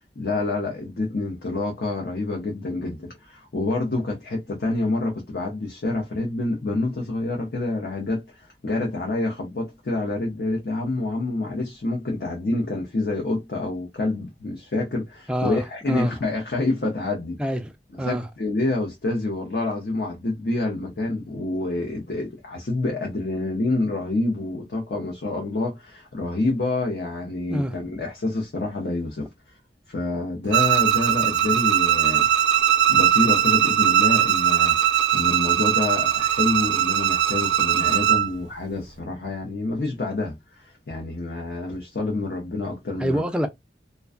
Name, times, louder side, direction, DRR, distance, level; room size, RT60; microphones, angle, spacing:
voice 1, 0.2-17.4 17.9-29.6 29.9-32.3 32.9-43.2, left 2 dB, 60° left, 0.6 m, -27 dB
voice 2, 15.3-15.6 15.9-16.1 17.4-17.7 18.0-18.2 27.5-27.7 43.0-43.5, equal, 5° right, 0.3 m, -25 dB
Bowed string instrument, 30.5-38.3, right 10 dB, 85° right, 0.4 m, -20 dB
2.4 x 2.2 x 2.3 m
head